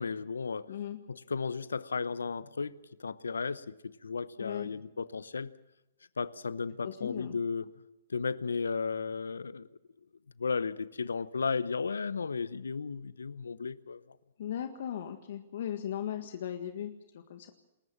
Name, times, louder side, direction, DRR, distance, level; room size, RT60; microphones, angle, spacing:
voice 1, 0.0-0.7 1.1-2.7 3.0-3.7 4.0-5.5 6.2-7.7 8.1-9.7 10.4-14.0, left 5 dB, 85° left, 0.8 m, -34 dB
voice 2, 4.4-4.7 6.8-7.4 14.4-16.9 17.3-17.5, left 10 dB, 60° left, 1.6 m, -37 dB
28.0 x 14.5 x 7.3 m
hypercardioid pair, 125°, 0 cm